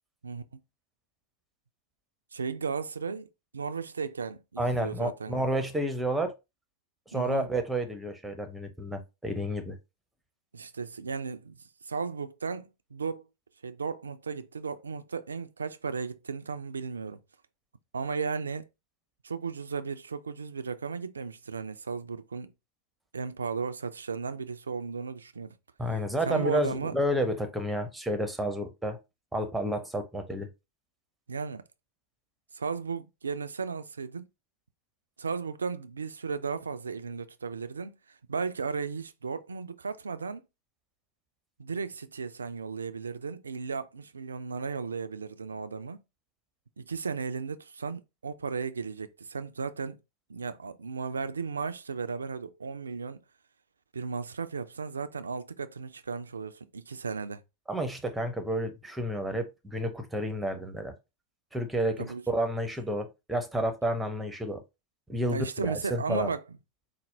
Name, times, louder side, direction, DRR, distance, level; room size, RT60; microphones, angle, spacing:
voice 1, 0.2-0.6 2.3-5.6 7.1-7.5 10.5-11.6 11.8-13.3 13.6-17.2 17.9-18.7 19.2-22.5 23.1-25.6 26.2-27.0 31.3-31.6 32.5-34.3 35.2-40.4 41.6-46.0 46.8-50.0 50.3-53.2 53.9-57.4 62.0-62.2 65.3-66.4, right 5 dB, 75° right, 0.3 m, -35 dB
voice 2, 4.6-6.3 7.1-9.8 25.8-29.0 29.3-30.5 57.7-60.9 61.5-64.6 65.1-66.3, right 1 dB, 5° right, 0.7 m, -30 dB
4.2 x 2.1 x 3.2 m
figure-of-eight pair, 90°, 0 cm